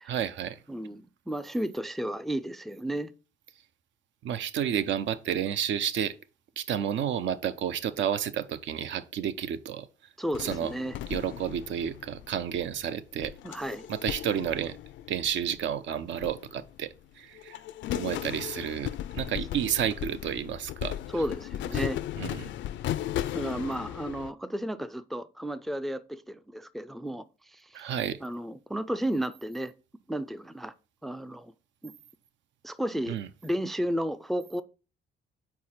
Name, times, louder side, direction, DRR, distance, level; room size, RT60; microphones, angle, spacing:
voice 1, 0.1-0.6 4.2-6.1 6.6-9.9 10.4-10.7 11.1-13.3 13.9-14.8 15.1-17.6 17.9-21.0 22.2-22.5 27.7-28.2 33.1-33.3, right 9 dB, 70° right, 0.5 m, -31 dB
voice 2, 0.7-3.1 10.2-11.0 13.4-13.9 21.1-22.0 23.3-27.9 28.2-29.7 30.1-30.7 31.0-31.5 31.8-31.9 32.6-33.2 33.4-34.6, right 1 dB, ahead, 0.3 m, -33 dB
sound 1, 10.3-12.6 13.2-15.7 16.2-17.0 17.3-24.3, left 12 dB, 70° left, 0.4 m, -36 dB
4.7 x 4.3 x 5.5 m
cardioid pair, 90°, 20 cm